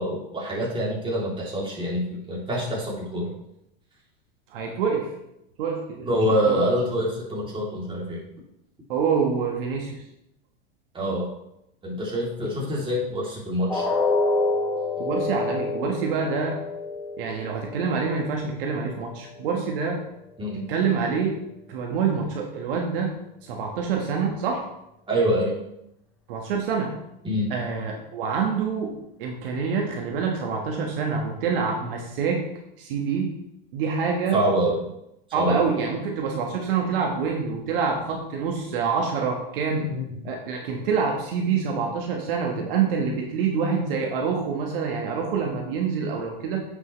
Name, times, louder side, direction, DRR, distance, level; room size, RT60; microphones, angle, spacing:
voice 1, 0.0-3.3 6.0-8.2 10.9-11.3 11.8-13.9 20.4-20.7 25.1-25.5 27.2-27.5 34.3-34.8 35.3-35.7 39.9-40.0, equal, 15° right, -4 dB, 3.2 m, -25 dB
voice 2, 4.5-5.1 5.6-6.1 6.5-6.6 8.9-10.0 15.0-16.6 17.2-20.0 20.5-21.4 21.7-23.1 23.4-24.6 26.3-26.9 27.5-28.9 29.2-32.4 32.8-33.3 33.7-34.4 35.3-39.8 40.2-46.6, right 5 dB, 70° right, 1 dB, 1.6 m, -26 dB
sound 1, 13.7-19.7 20.1-20.2 20.7-20.8, left 3 dB, 5° left, 2.1 m, -28 dB
9.5 x 6.1 x 3.3 m, 0.82 s
hypercardioid pair, 100°, 29 cm